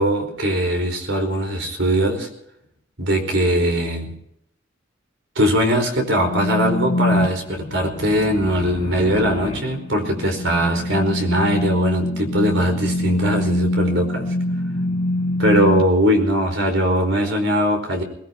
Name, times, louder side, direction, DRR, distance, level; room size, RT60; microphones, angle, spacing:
voice 1, 0.0-2.3 3.0-4.1 5.3-14.3 15.4-18.0, equal, 65° right, 5 dB, 4.7 m, -20 dB
sound 1, 6.2-15.8, left 1 dB, 30° left, 3.0 m, -24 dB
25.0 x 19.5 x 3.0 m, 0.75 s
head